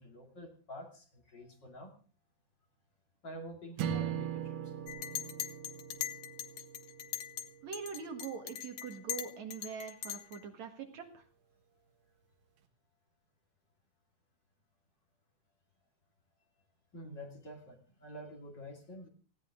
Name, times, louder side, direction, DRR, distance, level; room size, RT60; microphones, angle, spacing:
voice 1, 0.0-1.9 3.2-4.8 16.9-19.1, equal, 35° left, 1 dB, 3.2 m, -48 dB
sound 1, 3.8-8.1, right 9 dB, 80° right, 2.9 m, -40 dB
Chink clink, 4.9-7.5 7.7-10.4, left 11 dB, 65° left, 2.2 m, -41 dB
voice 2, 7.6-11.2, right 6 dB, 65° right, 5 dB, 2.9 m, -43 dB
18.5 x 16.5 x 3.8 m, 0.40 s
omnidirectional pair, 3.6 m